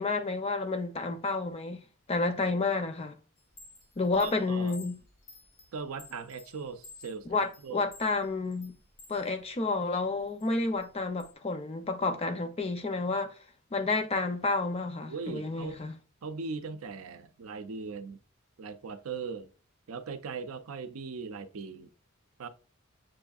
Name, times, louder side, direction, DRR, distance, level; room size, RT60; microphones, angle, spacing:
voice 1, 0.0-3.2 4.0-5.0 7.3-8.8 9.1-13.3 13.7-15.9, left 3 dB, 30° left, 0.5 m, -30 dB
Chime, 3.4-9.2 9.7-11.3, left 3 dB, 75° left, 0.9 m, -53 dB
voice 2, 4.2-4.7 5.7-7.9 15.1-15.8 16.2-18.2 18.6-19.5 19.9-21.9 22.4-22.5, right 4 dB, 85° right, 0.5 m, -39 dB
7.4 x 2.6 x 2.4 m
head